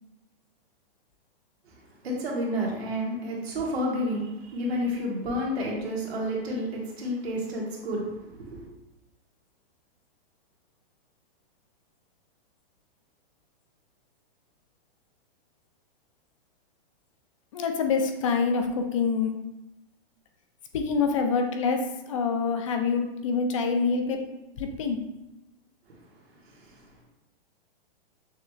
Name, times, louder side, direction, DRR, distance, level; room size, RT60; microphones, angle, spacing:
voice 1, 2.0-8.7 25.9-26.0 26.5-26.8, equal, 85° right, -2 dB, 1.6 m, -30 dB
voice 2, 17.5-19.3 20.7-24.2 24.6-25.0, left 5 dB, 35° left, 5 dB, 0.4 m, -26 dB
6.4 x 3.2 x 2.3 m, 0.95 s
hypercardioid pair, 160°, 30 cm